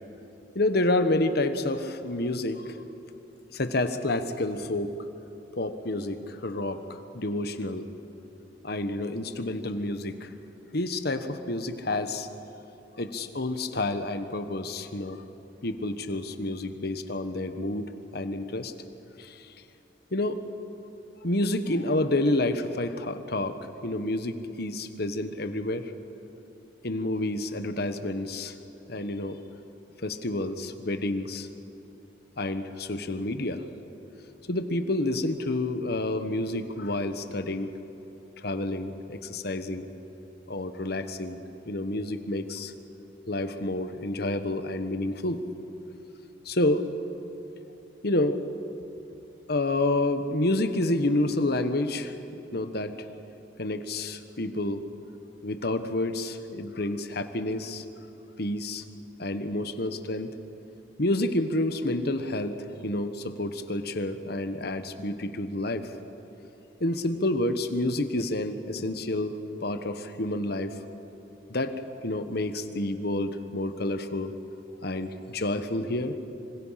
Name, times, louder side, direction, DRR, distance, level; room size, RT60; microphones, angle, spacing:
voice 1, 0.5-2.8 3.5-4.9 5.6-7.9 8.6-10.3 10.7-12.3 13.0-15.2 15.6-18.7 19.2-19.5 20.1-20.4 21.2-23.6 23.8-25.9 26.8-28.6 28.9-29.4 30.0-31.5 32.4-33.6 34.5-37.7 38.4-39.9 40.5-41.4 41.6-42.7 43.3-45.4 46.4-46.8 48.0-48.4 49.5-53.1 53.6-54.8 55.4-57.8 58.4-58.8 59.2-60.3 61.0-65.9 66.8-69.3 69.6-70.8 71.5-71.7 72.0-74.3 74.8-76.2, left 2 dB, 55° left, 9 dB, 1.3 m, -29 dB
25.5 x 25.5 x 5.8 m, 3.0 s
head